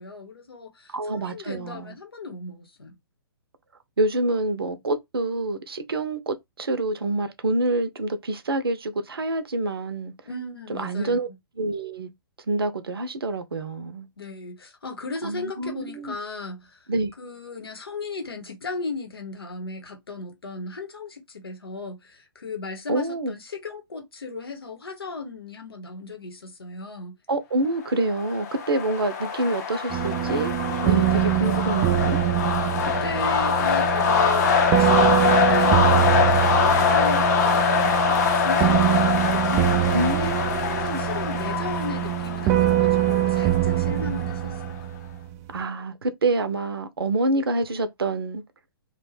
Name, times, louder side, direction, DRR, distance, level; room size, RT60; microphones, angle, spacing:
voice 1, 0.0-3.0 10.2-11.2 14.2-16.9 17.2-27.2 32.8-44.8, left 4 dB, 75° left, 0.9 m, -36 dB
voice 2, 0.9-2.0 4.0-10.1 10.7-11.3 11.6-12.1 12.5-14.1 15.2-16.2 16.9-17.1 22.9-23.3 27.3-30.6 30.8-32.2 39.9-41.0 45.5-48.4, right 2 dB, 75° right, 0.6 m, -27 dB
sound 1, 28.0-44.7, left 6 dB, 45° left, 0.6 m, -24 dB
sound 2, 29.9-45.4, right 13 dB, 20° right, 0.3 m, -24 dB
2.4 x 2.2 x 3.2 m
figure-of-eight pair, 120°, 13 cm